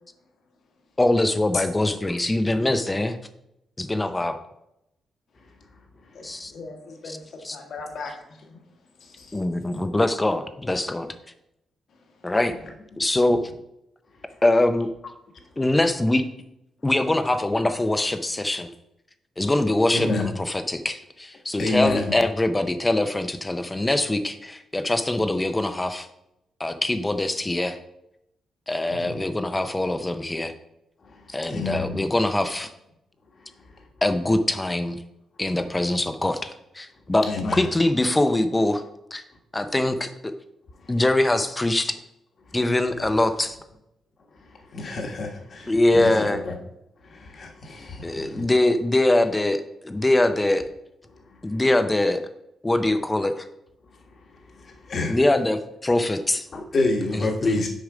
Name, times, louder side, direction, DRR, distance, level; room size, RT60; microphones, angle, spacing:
voice 1, 1.0-3.2 3.8-4.4 6.2-6.5 7.1-7.2 7.4-7.6 9.3-11.1 12.2-12.5 13.0-13.4 14.4-14.9 15.6-16.2 16.8-18.7 19.4-26.1 26.6-27.8 28.7-30.5 31.3-32.7 34.0-35.0 35.4-37.2 37.5-38.8 39.1-39.2 39.5-40.3 40.9-42.0 42.5-43.6 45.7-46.4 48.0-50.6 51.4-52.2 52.6-53.5 55.1-56.5 57.1-57.6, left 1 dB, 15° left, 0.5 m, -23 dB
voice 2, 6.1-8.6 9.0-9.9 11.9-12.3 15.5-15.6, left 3 dB, 60° left, 1.6 m, -41 dB
voice 3, 19.9-20.3 21.6-22.1 28.9-29.2 31.0-31.2 31.5-32.0 37.2-37.7 44.7-46.5 47.0-48.5 54.5-55.2 56.5-57.7, left 2 dB, 45° left, 1.4 m, -28 dB
6.5 x 5.0 x 5.0 m
cardioid pair, 140°, 0 cm